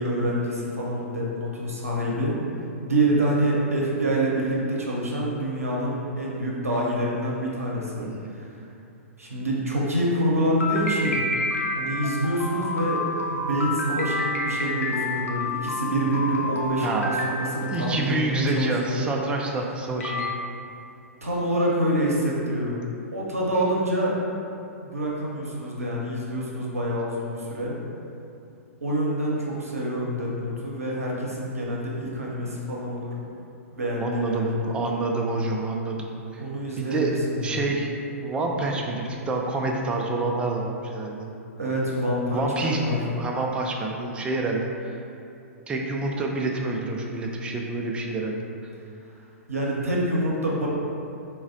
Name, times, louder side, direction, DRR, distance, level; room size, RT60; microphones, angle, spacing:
voice 1, 0.0-2.4 2.8-8.1 8.3-8.6 9.2-11.2 11.7-19.1 21.2-22.8 23.1-24.2 24.8-27.8 28.8-33.2 33.7-34.9 36.4-37.7 41.5-43.0 49.5-50.7, right 1 dB, 85° right, -4 dB, 0.6 m, -26 dB
voice 2, 8.0-8.3 16.8-20.3 34.0-36.4 36.8-37.2 37.4-37.9 38.2-41.3 42.3-45.0 45.7-48.4, right 2 dB, 15° right, 0 dB, 0.3 m, -28 dB
sound 1, 10.6-18.0 19.4-19.5 20.0-20.3, left 2 dB, 75° left, 0.4 m, -29 dB
3.9 x 2.1 x 2.5 m, 2.7 s
figure-of-eight pair, 110°, 8 cm